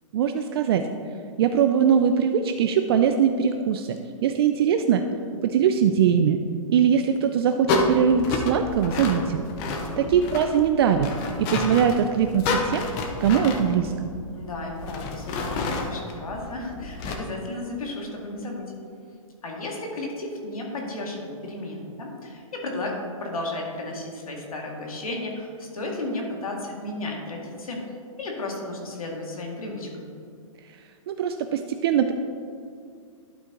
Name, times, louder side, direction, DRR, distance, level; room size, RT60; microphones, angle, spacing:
voice 1, 0.1-0.8 1.4-4.0 4.2-5.0 5.4-6.4 6.7-9.4 10.0-11.1 11.4-12.8 13.2-14.1 31.1-32.1, right 8 dB, 45° right, 7 dB, 0.4 m, -21 dB
sound 1, 7.7-17.2, left 3 dB, 25° left, 0.7 m, -30 dB
voice 2, 9.7-10.2 14.3-18.6 19.4-27.8 28.2-30.1, left 2 dB, 90° left, 0 dB, 2.0 m, -33 dB
11.5 x 4.4 x 3.8 m, 2.3 s
hypercardioid pair, 150°, 18 cm